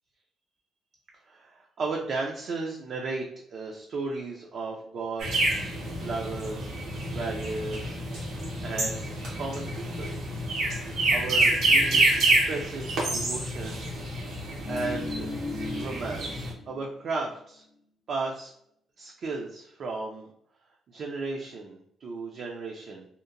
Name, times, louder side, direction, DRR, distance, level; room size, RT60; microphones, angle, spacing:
voice 1, 1.2-5.5 6.0-6.7 7.1-8.0 8.6-9.1 9.4-10.2 11.1-13.9 14.7-15.3 15.8-17.6 18.1-18.5 19.0-20.3 20.9-23.1, right 3 dB, 60° right, 0 dB, 0.4 m, -35 dB
sound 1, 5.2-16.5, right 2 dB, 85° right, 0.8 m, -27 dB
sound 2, 14.3-16.9 17.2-17.4, left 2 dB, 85° left, 0.5 m, -37 dB
2.8 x 2.1 x 2.5 m, 0.72 s
cardioid pair, 90°, 0 cm